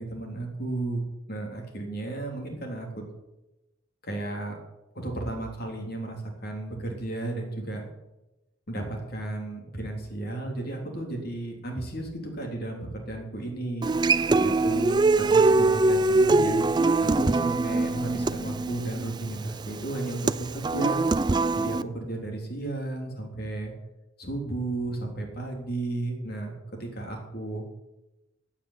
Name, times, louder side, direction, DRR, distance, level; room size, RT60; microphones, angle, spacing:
voice 1, 0.0-3.0 4.0-4.6 4.9-7.8 8.7-13.9 14.3-16.6 17.0-21.0 21.5-23.7 24.2-27.6, right 2 dB, 50° left, 1 dB, 3.4 m, -34 dB
Human voice / Acoustic guitar, 13.8-21.8, right 3 dB, 20° right, 0.4 m, -23 dB
16.5 x 5.9 x 9.6 m, 0.99 s
head